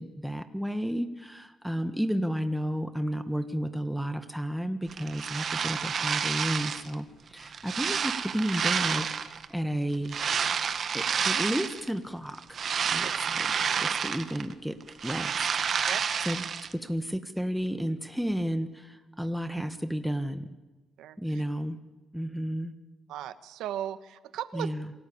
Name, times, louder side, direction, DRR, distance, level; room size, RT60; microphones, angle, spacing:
voice 1, 0.0-10.2 10.9-12.6 12.9-16.0 16.2-16.5 16.7-20.6 21.2-21.8 22.1-22.7 24.5-24.9, equal, ahead, 8 dB, 1.5 m, -32 dB
sound 1, 4.9-6.9 7.4-9.5 10.1-11.9 12.3-14.5 14.8-16.7, right 7 dB, 55° right, 1.5 m, -29 dB
voice 2, 23.1-24.7, right 11 dB, 85° right, 12 dB, 1.2 m, -36 dB
27.5 x 18.5 x 8.7 m, 1.1 s
cardioid pair, 90°, 0 cm